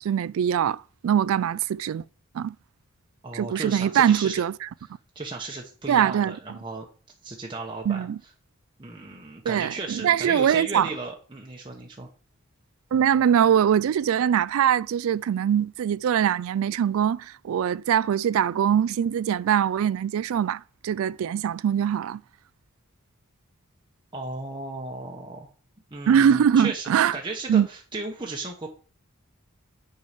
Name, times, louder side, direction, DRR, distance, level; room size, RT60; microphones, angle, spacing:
voice 1, 0.0-2.0 2.3-2.5 3.3-4.7 5.9-6.3 7.9-8.2 9.5-10.9 12.9-22.2 26.1-27.1 27.5-27.7, right 9 dB, 70° right, 0.3 m, -22 dB
voice 2, 3.2-4.4 5.1-6.9 7.2-8.1 8.8-12.1 24.1-25.5 25.9-28.7, right 3 dB, 20° right, 1.0 m, -35 dB
6.9 x 4.8 x 4.9 m
head